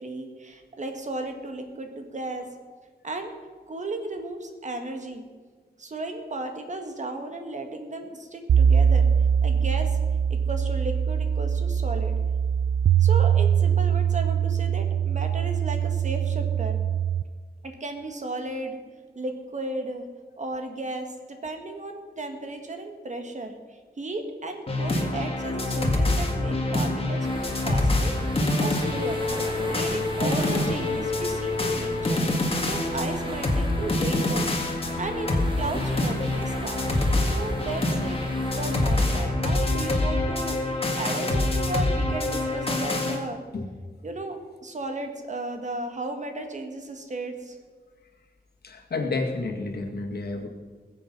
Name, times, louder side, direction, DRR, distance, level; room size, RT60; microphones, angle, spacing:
voice 1, 0.0-2.5 3.0-3.3 3.7-5.2 5.8-9.1 9.4-10.0 10.3-12.1 13.0-16.8 17.6-18.8 19.2-20.1 20.4-28.2 28.6-29.2 29.4-32.2 32.7-34.7 35.0-38.2 38.5-40.6 41.0-43.4 44.0-47.6, right 2 dB, 45° right, 5 dB, 1.7 m, -35 dB
sound 1, 8.5-17.2, right 8 dB, 90° right, 0.4 m, -22 dB
sound 2, 24.7-43.2, left 2 dB, 35° left, 1.8 m, -26 dB
sound 3, 27.2-39.2, right 1 dB, 30° right, 2.1 m, -38 dB
voice 2, 48.6-50.5, left 3 dB, 70° left, 2 dB, 2.0 m, -30 dB
21.0 x 7.8 x 5.4 m, 1.5 s
wide cardioid pair, 140°, 17 cm